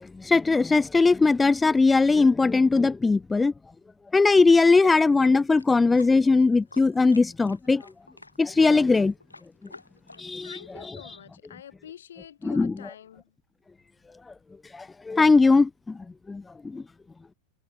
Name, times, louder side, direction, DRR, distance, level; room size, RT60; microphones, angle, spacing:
voice 1, 0.2-3.5 4.1-7.8 8.4-9.1 10.2-10.5 12.4-12.7 14.7-16.0 16.3-16.8, left 3 dB, 10° left, 0.7 m, -20 dB
sound 1, 4.5-10.5, left 3 dB, 80° left, 3.9 m, -49 dB
voice 2, 10.1-13.3, left 10 dB, 65° left, 5.8 m, -47 dB
figure-of-eight pair, 90°, 0 cm